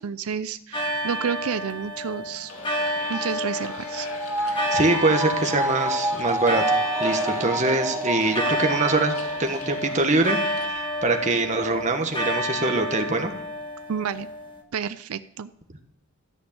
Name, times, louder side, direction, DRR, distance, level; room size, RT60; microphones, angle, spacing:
voice 1, 0.0-2.5 3.1-4.1 13.9-14.3 14.7-15.5, right 7 dB, 85° right, 13 dB, 0.5 m, -30 dB
sound 1, 0.7-14.6, equal, 20° left, 1.5 m, -30 dB
sound 2, 2.5-10.7, left 4 dB, 90° left, 1.7 m, -41 dB
sound 3, 3.1-9.8 10.1-10.2, right 1 dB, 10° right, 0.6 m, -29 dB
voice 2, 4.7-9.1 9.4-10.4 10.7-13.3, right 2 dB, 35° right, 5 dB, 1.3 m, -23 dB
13.5 x 6.2 x 8.7 m, 0.73 s
head